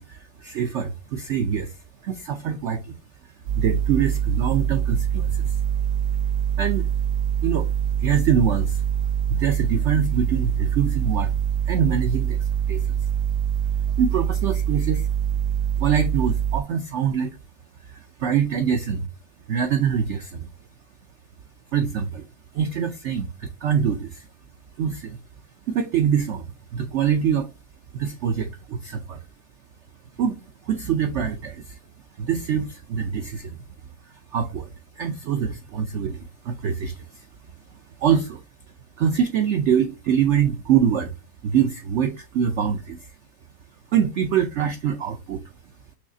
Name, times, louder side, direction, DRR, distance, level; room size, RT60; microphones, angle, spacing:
voice 1, 0.0-1.7 2.0-2.9 3.6-5.5 6.6-6.9 7.4-7.7 8.0-8.8 9.3-11.3 11.7-13.0 14.0-15.1 15.8-17.3 18.2-19.1 19.5-20.5 21.7-22.2 22.5-24.3 24.8-25.2 25.7-26.4 26.7-27.5 27.9-29.2 30.2-30.4 30.7-31.8 32.2-33.6 34.3-37.2 38.0-38.4 39.0-41.1 41.4-43.0 43.9-45.4, right 8 dB, 85° right, 0.6 m, -24 dB
sound 1, 3.5-16.6, right 9 dB, 70° right, 1.2 m, -24 dB
6.3 x 3.2 x 2.7 m
omnidirectional pair, 1.9 m